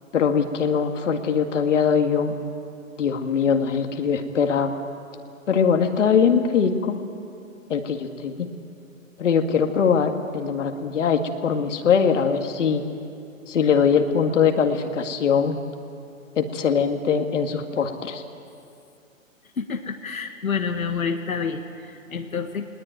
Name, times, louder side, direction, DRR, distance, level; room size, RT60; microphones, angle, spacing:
voice 1, 0.1-2.3 3.0-4.8 5.5-7.0 7.7-8.5 9.2-12.8 13.5-15.6 16.4-18.2, left 6 dB, 60° left, 5 dB, 2.0 m, -21 dB
voice 2, 19.6-22.7, left 5 dB, 85° left, 5 dB, 1.6 m, -28 dB
20.0 x 19.5 x 9.2 m, 2.6 s
hypercardioid pair, 140°, 41 cm